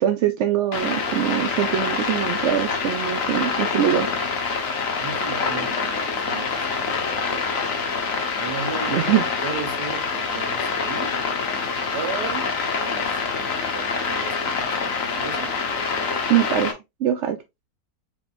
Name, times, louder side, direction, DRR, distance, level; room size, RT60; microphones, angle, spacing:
voice 1, 0.0-4.1 8.9-9.2 16.3-16.7 17.0-17.4, right 10 dB, 70° right, 0.7 m, -22 dB
sound 1, 0.7-16.7, left 5 dB, 55° left, 1.4 m, -26 dB
voice 2, 5.0-8.0 8.4-11.2 11.9-12.5 12.8-15.5, right 6 dB, 90° right, 1.8 m, -36 dB
4.6 x 3.9 x 2.6 m
omnidirectional pair, 1.7 m